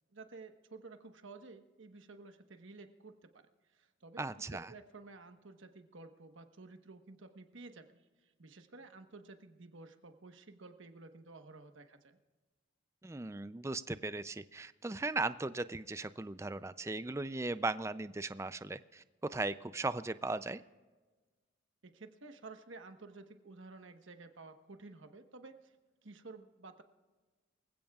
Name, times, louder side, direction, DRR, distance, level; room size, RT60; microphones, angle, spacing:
voice 1, 0.1-4.2 4.5-12.2 21.8-25.8 26.0-26.8, right 3 dB, 85° right, 7 dB, 1.2 m, -53 dB
voice 2, 4.2-4.7 13.0-20.6, right 2 dB, 15° right, 14 dB, 0.4 m, -37 dB
25.0 x 16.0 x 2.4 m, 1.3 s
head